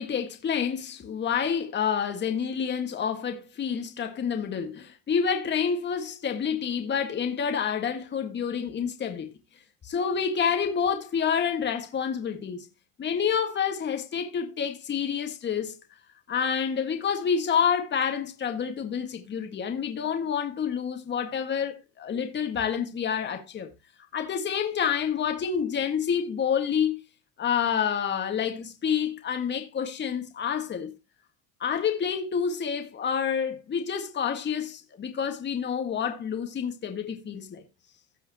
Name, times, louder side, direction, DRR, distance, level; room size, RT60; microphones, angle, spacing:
voice 1, 0.0-9.3 9.8-12.7 13.0-15.8 16.3-23.7 24.1-27.0 27.4-30.9 31.6-37.6, left 7 dB, 30° left, 1.8 m, -28 dB
16.0 x 5.5 x 2.9 m
supercardioid pair, 125°, 37 cm